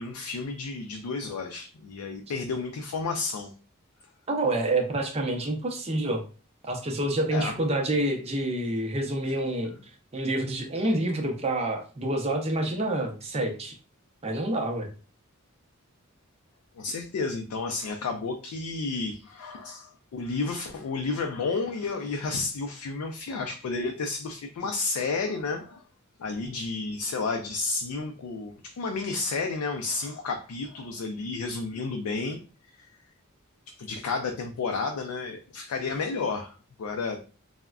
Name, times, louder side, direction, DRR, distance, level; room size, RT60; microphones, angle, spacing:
voice 1, 0.0-3.5 7.3-7.6 16.8-25.8 26.2-32.4 32.8-32.9 33.7-37.2, left 4 dB, 90° left, 4 dB, 0.4 m, -31 dB
voice 2, 4.3-6.2 6.7-9.7 10.1-13.7 14.2-14.9, right 1 dB, 30° right, 2 dB, 0.5 m, -27 dB
3.4 x 2.1 x 2.3 m, 0.36 s
head